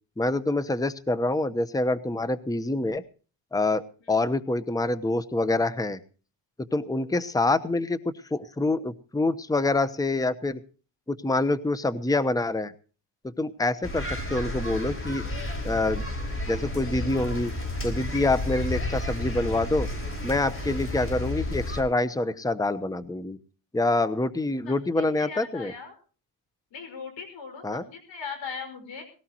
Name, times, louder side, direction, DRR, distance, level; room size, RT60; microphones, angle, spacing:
voice 1, 0.2-3.0 3.5-6.0 6.7-8.0 8.3-10.6 11.1-12.7 13.2-15.2 15.6-16.0 16.5-17.5 17.8-19.9 20.2-23.4 23.7-25.7 27.6-27.8, left 2 dB, 10° left, 15 dB, 1.0 m, -26 dB
sound 1, 13.8-21.8, left 1 dB, 30° left, 5.1 m, -31 dB
voice 2, 24.7-25.9 26.7-29.0, left 5 dB, 70° left, 7 dB, 5.6 m, -39 dB
19.5 x 17.0 x 3.0 m, 0.37 s
cardioid pair, 95°, 45 cm